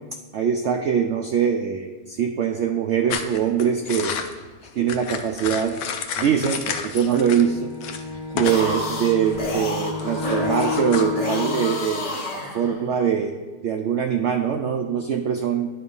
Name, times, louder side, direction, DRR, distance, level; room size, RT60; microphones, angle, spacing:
voice 1, 0.3-4.2 4.8-5.8 6.2-7.7 8.3-13.3 13.6-15.7, right 8 dB, 70° right, 4 dB, 0.7 m, -23 dB
Boot in Mulch, 3.1-7.5 7.8-8.7 8.9-11.0, left 7 dB, 80° left, 1.1 m, -31 dB
Bowed string instrument, 7.1-11.9, left 5 dB, 35° left, 0.4 m, -31 dB
sound 1, 8.3-13.0, left 1 dB, 50° left, 1.5 m, -30 dB
10.0 x 3.8 x 5.3 m, 1.3 s
omnidirectional pair, 1.6 m